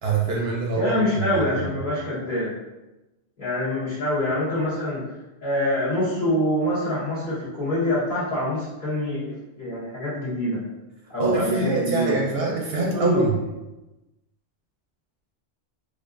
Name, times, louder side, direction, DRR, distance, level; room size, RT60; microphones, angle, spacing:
voice 1, 0.0-0.9 1.3-1.7 11.2-13.3, right 3 dB, 65° right, -2 dB, 0.8 m, -25 dB
voice 2, 0.7-2.5 3.4-5.0 5.4-10.6 11.1-12.2 12.7-13.3, left 1 dB, 45° left, -11 dB, 1.8 m, -25 dB
4.6 x 2.4 x 2.4 m, 1.0 s
omnidirectional pair, 1.2 m